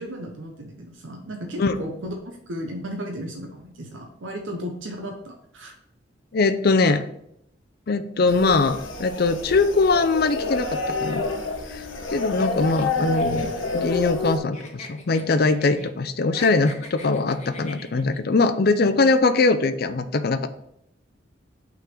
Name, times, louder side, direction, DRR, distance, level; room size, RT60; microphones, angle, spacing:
voice 1, 0.0-5.7, equal, 80° right, 2 dB, 0.8 m, -35 dB
voice 2, 6.3-7.0 7.9-11.3 11.7-11.8 12.1-20.5, left 3 dB, 50° left, 10 dB, 0.5 m, -21 dB
sound 1, 8.3-14.4, left 3 dB, 85° left, 1.1 m, -28 dB
sound 2, 12.4-14.3 14.5-15.9 16.2-18.2, left 2 dB, 35° left, 1.1 m, -42 dB
5.8 x 3.8 x 5.9 m, 0.75 s
head